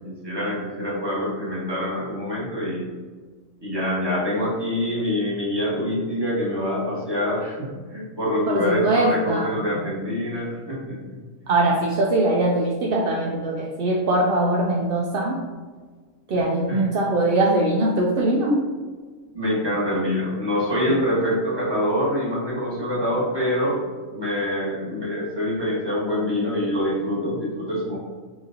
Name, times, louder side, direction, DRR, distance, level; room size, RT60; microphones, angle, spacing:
voice 1, 0.0-2.9 3.6-11.2 11.5-11.6 16.7-16.8 19.3-23.8 24.1-28.0, left 1 dB, 20° right, -7 dB, 1.4 m, -25 dB
voice 2, 8.5-9.6 11.5-15.5 16.3-18.7, right 2 dB, 60° right, -2 dB, 0.6 m, -21 dB
5.9 x 2.7 x 2.7 m, 1.5 s
omnidirectional pair, 1.4 m